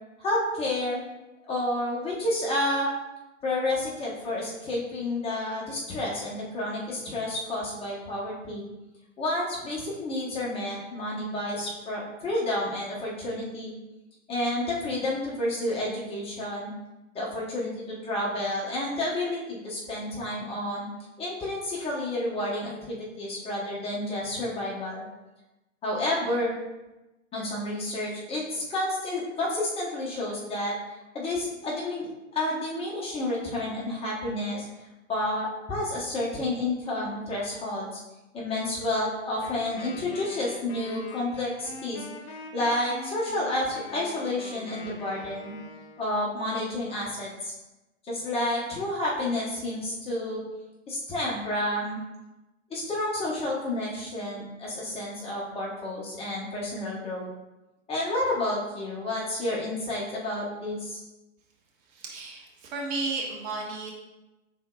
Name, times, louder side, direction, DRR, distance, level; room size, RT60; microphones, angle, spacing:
voice 1, 0.2-1.0 1.5-2.9 3.4-8.6 9.2-13.7 14.3-16.7 17.1-20.9 21.2-25.0 25.8-26.5 27.3-30.7 31.1-34.7 35.1-38.0 38.3-42.1 42.5-45.5 46.0-47.5 48.0-50.4 50.9-52.0 52.7-57.3 57.9-61.0, left 1 dB, 15° left, -5 dB, 0.9 m, -30 dB
Wind instrument woodwind instrument, 39.4-46.1, left 3 dB, 45° left, 0.8 m, -44 dB
voice 2, 61.9-63.9, right 3 dB, 35° right, -1 dB, 0.9 m, -33 dB
5.4 x 3.9 x 2.3 m, 1.0 s
figure-of-eight pair, 110°, 40 cm